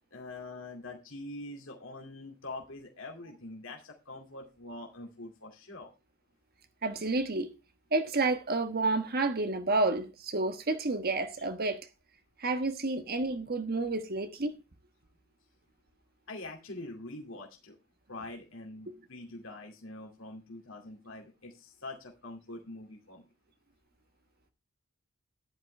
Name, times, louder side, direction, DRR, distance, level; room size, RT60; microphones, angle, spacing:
voice 1, 0.1-5.9 16.3-17.8 18.1-23.2, left 2 dB, 65° left, 2.4 m, -44 dB
voice 2, 6.8-7.5 7.9-11.9 12.4-14.6 18.9-19.0, right 3 dB, 45° right, 1.3 m, -30 dB
13.0 x 11.0 x 3.3 m
head